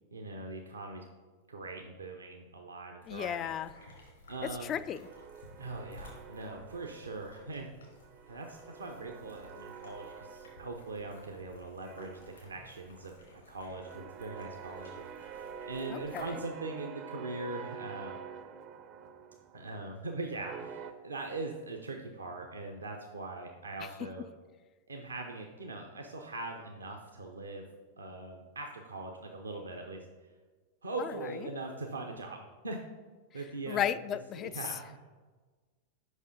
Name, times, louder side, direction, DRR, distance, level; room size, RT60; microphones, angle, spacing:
voice 1, 0.1-1.0 1.5-3.5 4.3-4.8 5.6-7.7 8.3-13.1 13.5-15.4 15.7-18.2 19.5-24.2 24.9-27.7 28.0-30.0 30.8-32.8 33.3-33.9 34.4-35.0, right 3 dB, 75° right, 2 dB, 0.7 m, -41 dB
sound 1, 3.0-16.3, left 1 dB, 70° left, 2.3 m, -56 dB
voice 2, 3.1-3.7 4.7-5.0 15.9-16.2 33.7-34.5, left 10 dB, 30° left, 14 dB, 0.3 m, -33 dB
sound 2, 5.0-7.6 7.9-11.5 11.8-20.9, right 7 dB, 35° right, 0.5 m, -48 dB
6.4 x 5.5 x 5.1 m, 1.3 s
figure-of-eight pair, 90°, 0 cm